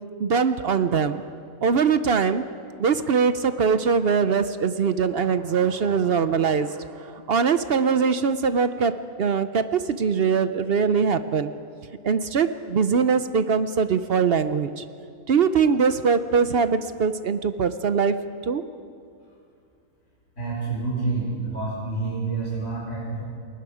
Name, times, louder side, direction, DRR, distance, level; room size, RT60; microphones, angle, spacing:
voice 1, 0.2-1.3 1.6-2.4 2.8-11.5 12.0-14.8 15.3-18.2 18.5-18.6, right 6 dB, 55° right, 11 dB, 0.8 m, -22 dB
voice 2, 20.4-23.2, right 3 dB, 55° left, -5 dB, 4.6 m, -28 dB
29.5 x 20.5 x 5.0 m, 2.4 s
omnidirectional pair, 1.5 m